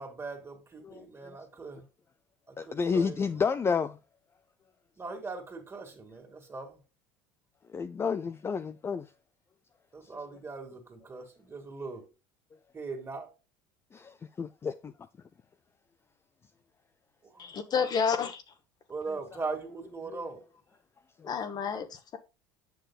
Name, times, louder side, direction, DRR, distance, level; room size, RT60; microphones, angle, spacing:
voice 1, 0.0-1.9 2.5-3.3 5.0-6.8 9.9-12.1 12.7-13.3 17.2-17.4 17.8-17.9 18.9-20.5, right 4 dB, 25° right, 2.2 m, -40 dB
voice 2, 0.8-1.4 2.6-4.0 7.7-9.1 13.9-14.9 20.1-20.2 21.2-21.3, left 5 dB, 25° left, 0.4 m, -31 dB
voice 3, 17.4-18.4 21.2-22.2, left 6 dB, 40° left, 1.0 m, -30 dB
7.9 x 6.4 x 2.3 m
supercardioid pair, 90°, 10 cm